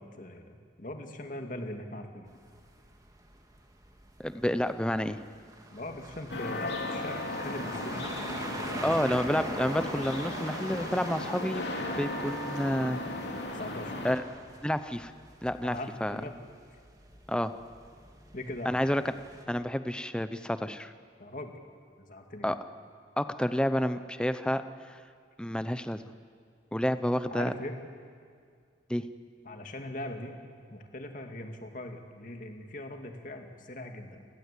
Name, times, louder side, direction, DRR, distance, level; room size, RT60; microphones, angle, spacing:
voice 1, 0.0-2.3 5.7-8.0 8.3-9.2 13.5-14.1 15.6-16.3 18.3-18.8 21.2-21.5 22.0-22.5 27.3-27.7 29.4-30.4 30.7-34.3, left 1 dB, 45° left, 4 dB, 2.2 m, -41 dB
sound 1, 2.3-19.4, right 1 dB, 20° right, 2.0 m, -45 dB
voice 2, 4.2-5.2 8.8-11.6 12.0-13.0 14.0-14.2 14.6-15.1 15.4-16.2 17.3-17.5 18.7-19.0 19.5-20.9 22.4-22.5 23.2-25.0 25.4-26.0 26.7-27.5 28.9-29.0, equal, 5° left, 11 dB, 0.7 m, -29 dB
sound 2, 6.3-14.1, left 1 dB, 65° left, 3.1 m, -36 dB
30.0 x 18.0 x 8.4 m, 2.1 s
head